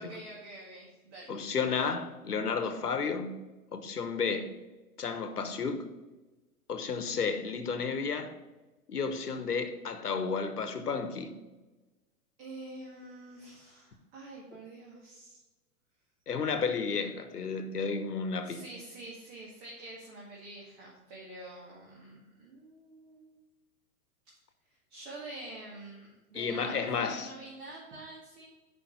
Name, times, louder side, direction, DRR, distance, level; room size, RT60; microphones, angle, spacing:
voice 1, 0.0-1.4 12.4-15.4 18.4-23.4 24.9-28.4, right 2 dB, 45° right, 2.2 m, -47 dB
voice 2, 1.3-3.4 3.7-4.5 5.0-5.8 6.7-8.3 8.9-11.3 16.3-18.6 26.3-27.3, left 5 dB, 90° left, 1.0 m, -32 dB
6.4 x 5.4 x 5.3 m
hypercardioid pair, 110°, 45 cm